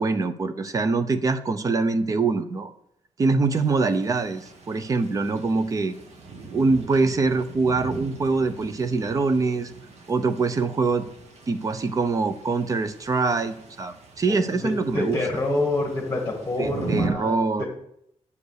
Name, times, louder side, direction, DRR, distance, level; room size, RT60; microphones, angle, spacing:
voice 1, 0.0-2.7 3.2-5.9 6.5-9.7 10.1-11.1 11.5-15.2 16.6-17.6, right 3 dB, 30° right, 10 dB, 0.6 m, -24 dB
sound 1, 3.5-17.1, right 3 dB, 75° right, 1.5 m, -39 dB
voice 2, 14.3-17.6, left 2 dB, 20° left, -3 dB, 2.0 m, -27 dB
8.2 x 5.2 x 6.5 m, 0.74 s
wide cardioid pair, 155°, 11 cm